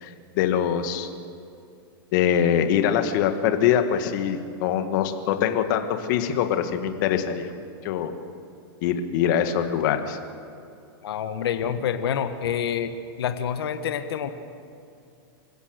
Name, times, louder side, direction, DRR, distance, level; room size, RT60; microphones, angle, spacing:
voice 1, 0.0-1.1 2.1-7.5 7.8-8.1 8.8-10.2, left 9 dB, 50° left, 7 dB, 1.9 m, -23 dB
voice 2, 11.0-12.9 13.2-14.3, left 8 dB, 75° left, 9 dB, 1.5 m, -27 dB
26.5 x 16.0 x 6.6 m, 2.5 s
hypercardioid pair, 145°, 13 cm